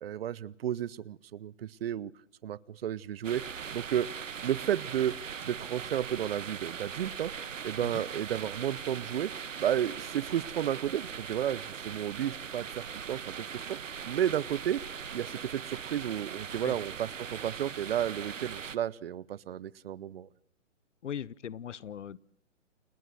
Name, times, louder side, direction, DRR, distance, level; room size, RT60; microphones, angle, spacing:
voice 1, 0.0-2.1 2.4-4.1 4.4-5.1 5.4-7.3 7.6-13.8 14.0-14.8 15.1-20.3, right 10 dB, 50° right, 1.0 m, -32 dB
sound 1, 3.2-18.8, right 7 dB, 85° right, 1.3 m, -40 dB
voice 2, 21.0-22.2, left 9 dB, 70° left, 1.0 m, -39 dB
29.5 x 19.0 x 7.8 m
hypercardioid pair, 140°, 37 cm